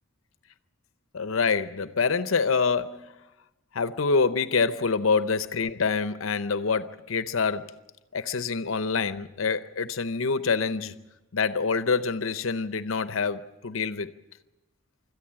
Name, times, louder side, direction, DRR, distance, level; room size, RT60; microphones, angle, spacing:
voice 1, 1.1-3.2 3.7-7.8 8.1-10.9 11.3-14.1, left 5 dB, 65° left, 0.7 m, -26 dB
25.0 x 14.0 x 7.5 m
head